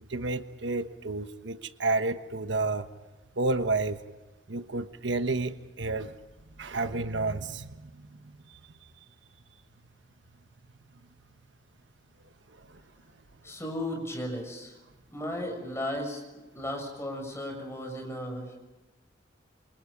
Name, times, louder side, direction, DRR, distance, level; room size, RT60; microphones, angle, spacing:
voice 1, 0.1-2.9 3.4-4.0 4.5-6.1 6.6-8.3, right 3 dB, 75° right, 9 dB, 1.2 m, -30 dB
voice 2, 13.4-14.7 15.1-16.2 16.5-18.6, left 1 dB, 15° left, 2 dB, 6.8 m, -35 dB
28.0 x 25.5 x 5.3 m, 1.1 s
head